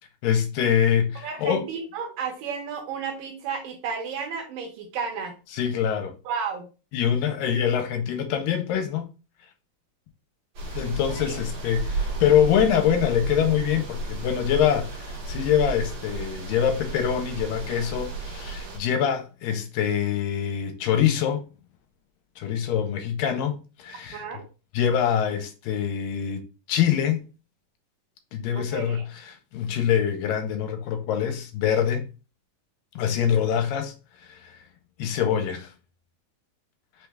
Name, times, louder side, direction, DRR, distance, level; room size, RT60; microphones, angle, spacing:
voice 1, 0.2-1.6 5.5-6.1 6.9-9.1 10.7-21.5 22.4-24.2 24.7-27.2 28.3-32.0 33.0-33.9 34.3-34.5 35.0-35.7, left 9 dB, 85° left, 2.3 m, -24 dB
voice 2, 1.2-5.3 6.3-6.7 11.3-11.4 24.1-24.4 28.6-29.0, right 6 dB, 80° right, 2.6 m, -32 dB
sound 1, 10.5-18.8, right 3 dB, 55° right, 2.5 m, -33 dB
5.6 x 3.3 x 2.3 m
omnidirectional pair, 4.1 m